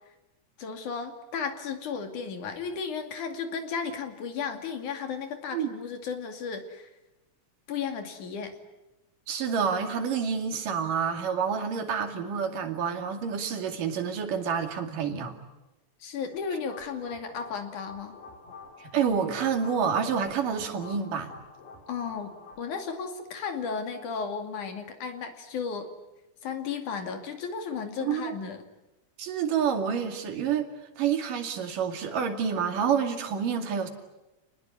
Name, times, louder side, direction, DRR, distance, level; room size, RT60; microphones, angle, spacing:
voice 1, 0.6-6.9 7.7-8.6 16.0-18.2 21.9-25.9 26.4-28.6, left 6 dB, 70° left, 6 dB, 3.9 m, -34 dB
voice 2, 9.3-15.3 18.8-21.3 28.0-28.4 29.2-30.7 31.0-33.9, right 7 dB, 85° right, 5 dB, 4.0 m, -28 dB
sound 1, 16.3-22.8, left 4 dB, 90° left, 5.8 m, -48 dB
29.0 x 20.0 x 9.7 m, 1.0 s
omnidirectional pair, 3.7 m